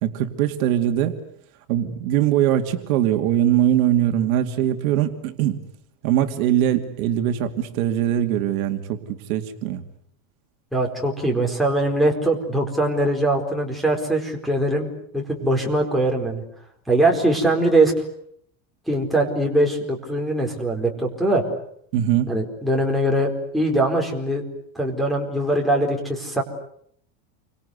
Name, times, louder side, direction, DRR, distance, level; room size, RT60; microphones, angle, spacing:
voice 1, 0.0-1.2 1.7-5.6 6.0-9.8 21.9-22.3, right 11 dB, 55° right, 7 dB, 2.6 m, -21 dB
voice 2, 10.7-16.4 16.9-17.9 18.9-21.4 22.3-24.4 24.7-26.4, right 1 dB, ahead, -1 dB, 4.4 m, -22 dB
29.5 x 25.0 x 8.1 m, 0.68 s
supercardioid pair, 175°, 50 cm